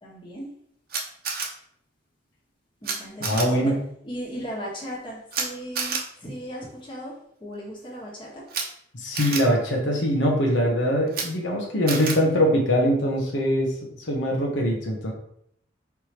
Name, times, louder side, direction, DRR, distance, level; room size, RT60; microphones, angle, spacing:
voice 1, 0.0-0.5 2.8-3.7 4.0-8.4, equal, 25° left, -4 dB, 1.3 m, -37 dB
Camera, 0.9-1.5 2.8-2.9 3.2-3.4 5.3-5.4 5.7-6.0 8.5-8.6 9.1-9.4 11.1-11.2 11.9-12.1, right 5 dB, 55° right, 0.8 m, -28 dB
voice 2, 3.2-3.8 8.9-13.7 14.1-15.1, equal, 90° left, -1 dB, 1.0 m, -22 dB
4.7 x 3.3 x 3.0 m, 0.69 s
head